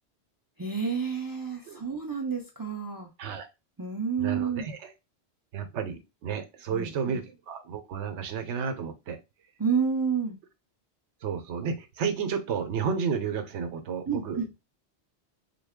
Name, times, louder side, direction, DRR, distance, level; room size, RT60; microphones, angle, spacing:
voice 1, 0.6-3.1 3.8-4.7 6.7-7.2 9.6-10.4 14.1-14.4, right 6 dB, 35° right, 0 dB, 0.3 m, -29 dB
voice 2, 4.2-4.9 5.5-9.2 11.2-14.4, right 6 dB, 85° right, 7 dB, 1.0 m, -32 dB
3.2 x 2.3 x 3.5 m, 0.25 s
omnidirectional pair, 1.1 m